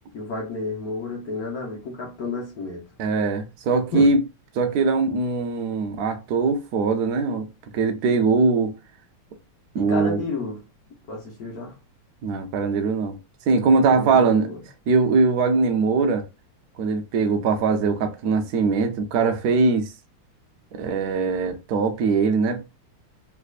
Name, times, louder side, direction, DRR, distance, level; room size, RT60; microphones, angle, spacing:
voice 1, 0.1-2.8 3.9-4.1 9.8-10.6 11.1-11.8 13.8-14.6, left 3 dB, 55° left, 1.1 m, -31 dB
voice 2, 3.0-4.2 4.6-7.5 7.7-8.7 9.7-10.2 12.2-13.2 13.5-14.5 14.9-16.2 16.8-19.9 20.7-22.6, right 4 dB, 90° right, 0.8 m, -21 dB
3.3 x 3.3 x 2.4 m
omnidirectional pair, 2.4 m